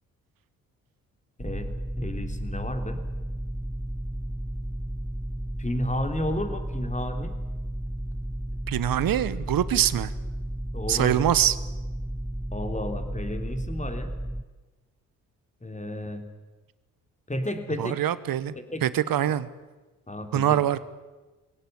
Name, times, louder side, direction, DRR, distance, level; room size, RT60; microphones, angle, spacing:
voice 1, 1.4-1.7 2.0-3.0 5.6-7.3 10.7-11.3 12.5-14.1 15.6-16.2 17.3-18.0 18.6-18.8 19.2-19.3 20.1-20.6, left 1 dB, 20° left, 7 dB, 3.4 m, -32 dB
sound 1, 1.4-14.4, right 1 dB, 5° right, 0.7 m, -33 dB
voice 2, 8.7-10.1 10.9-11.6 17.8-18.5 18.8-19.5 20.3-20.8, right 11 dB, 60° right, 17 dB, 1.2 m, -24 dB
20.5 x 17.5 x 9.6 m, 1.2 s
hypercardioid pair, 50°, 39 cm